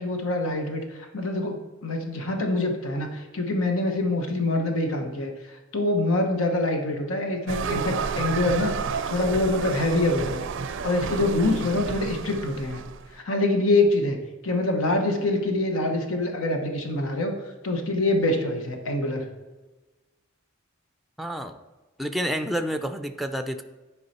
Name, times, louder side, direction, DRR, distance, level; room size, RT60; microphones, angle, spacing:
voice 1, 0.0-8.7 9.1-10.4 10.8-12.8 13.1-14.2 14.4-17.3 17.6-19.3, left 2 dB, 80° left, 4 dB, 1.1 m, -25 dB
sound 1, 7.5-13.1, right 5 dB, 65° right, 0.4 m, -31 dB
voice 2, 21.2-21.6 22.0-23.6, equal, ahead, 7 dB, 0.4 m, -29 dB
11.0 x 4.7 x 4.2 m, 1.2 s
head